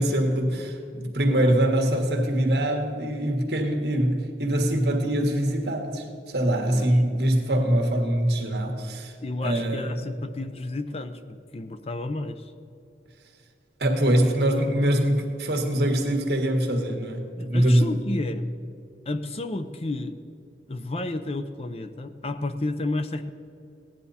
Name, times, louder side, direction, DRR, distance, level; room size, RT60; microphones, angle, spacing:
voice 1, 0.0-9.1 9.4-9.9 13.8-18.0, right 1 dB, 60° right, 3 dB, 1.6 m, -23 dB
voice 2, 1.3-1.6 6.7-7.3 9.2-12.5 17.4-18.5 19.1-20.2 20.7-23.3, left 2 dB, 35° left, 10 dB, 0.5 m, -32 dB
16.5 x 10.0 x 4.2 m, 2.6 s
head